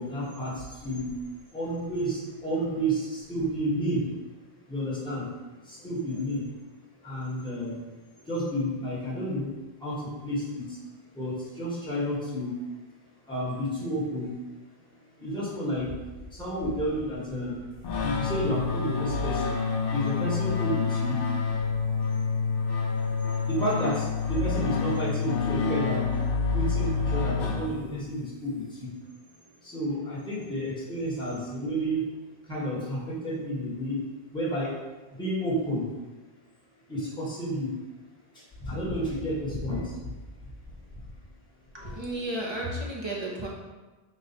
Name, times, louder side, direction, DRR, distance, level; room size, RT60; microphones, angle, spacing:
voice 1, 0.0-4.0 4.7-5.3 5.6-6.5 7.0-7.8 8.2-9.5 9.8-10.8 11.1-12.6 13.3-14.3 15.2-15.9 16.3-17.7 18.0-19.6 19.9-21.2 22.3-22.4 23.2-26.1 26.5-28.9 29.6-32.0 32.4-34.0 34.3-34.7 35.1-35.9 36.9-37.7 38.3-40.2 41.8-41.9, equal, 5° left, -9 dB, 1.2 m, -31 dB
sound 1, 17.8-28.1, left 5 dB, 60° left, 0.7 m, -28 dB
voice 2, 41.7-43.5, right 1 dB, 30° right, -3 dB, 0.7 m, -33 dB
4.1 x 2.3 x 4.1 m, 1.2 s
omnidirectional pair, 1.1 m